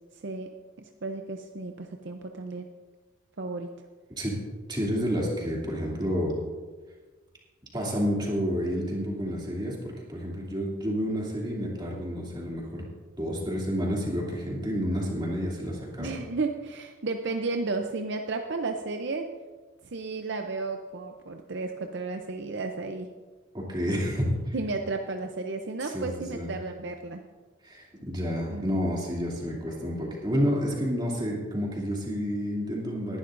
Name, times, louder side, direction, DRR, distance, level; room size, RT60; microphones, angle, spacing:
voice 1, 0.1-0.5 1.0-2.7 3.4-3.7 16.0-19.3 19.9-23.1 24.5-27.2 28.5-28.8, right 3 dB, 55° right, 4 dB, 0.6 m, -33 dB
voice 2, 4.7-6.4 7.7-12.8 13.2-16.1 23.5-24.5 25.8-26.5 27.6-33.2, equal, 20° right, -3 dB, 2.7 m, -30 dB
19.0 x 11.5 x 2.6 m, 1.4 s
head